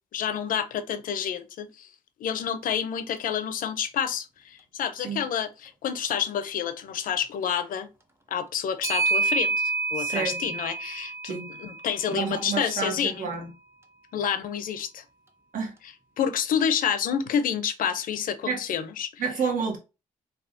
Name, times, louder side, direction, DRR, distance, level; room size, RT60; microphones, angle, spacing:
voice 1, 0.1-1.9 2.2-7.9 8.3-13.3 14.1-15.0 16.2-19.2, left 8 dB, 80° left, 0.5 m, -29 dB
Clock, 2.6-2.7 3.1-3.2 6.0-6.3 8.8-13.1, right 4 dB, 20° right, 0.6 m, -29 dB
voice 2, 9.9-10.4 11.3-11.5 12.1-13.5 15.5-15.7 18.5-18.6 19.2-19.8, right 5 dB, 70° right, 1.2 m, -29 dB
3.4 x 2.3 x 2.6 m
cardioid pair, 75°, 14 cm